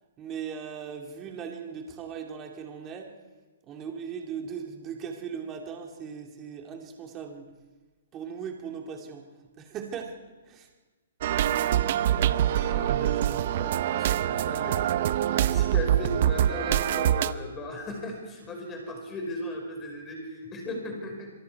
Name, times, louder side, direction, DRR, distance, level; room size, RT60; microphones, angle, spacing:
voice 1, 0.2-3.1 3.6-7.5 8.1-9.3 9.6-10.2 10.4-10.7, right 7 dB, 20° right, 2 dB, 2.4 m, -38 dB
sound 1, 11.2-17.3, right 11 dB, 45° right, 0.7 m, -25 dB
voice 2, 12.5-14.8 15.3-21.3, left 1 dB, 15° left, 2 dB, 5.1 m, -37 dB
27.0 x 23.0 x 4.7 m, 1.3 s
hypercardioid pair, 165°, 0 cm